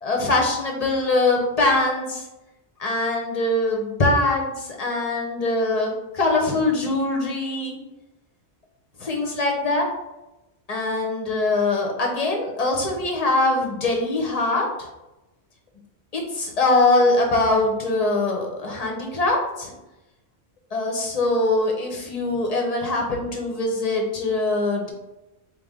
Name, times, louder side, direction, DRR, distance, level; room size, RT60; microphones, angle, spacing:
voice 1, 0.0-2.2 2.8-7.8 9.0-9.9 10.7-14.7 16.1-19.7 20.7-24.9, left 2 dB, 40° left, 0 dB, 0.9 m, -22 dB
3.5 x 3.0 x 3.6 m, 0.97 s
omnidirectional pair, 1.1 m